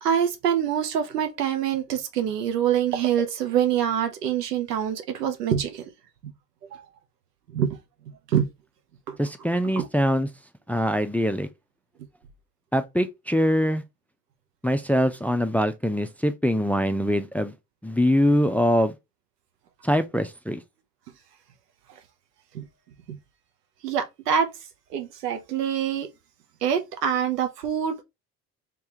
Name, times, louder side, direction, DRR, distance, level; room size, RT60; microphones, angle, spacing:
voice 1, 0.0-5.8 6.7-6.9 7.5-7.8 8.3-8.5 9.1-9.2 9.7-9.9 22.5-22.6 23.1-23.2 23.8-24.5 24.9-26.1 26.6-28.0, right 9 dB, 85° right, 0.8 m, -25 dB
voice 2, 9.2-10.3 10.7-11.5 12.7-13.8 14.6-17.5 17.8-19.0 19.8-20.6, equal, 5° left, 0.4 m, -23 dB
3.4 x 3.2 x 2.8 m
figure-of-eight pair, 55°, 47 cm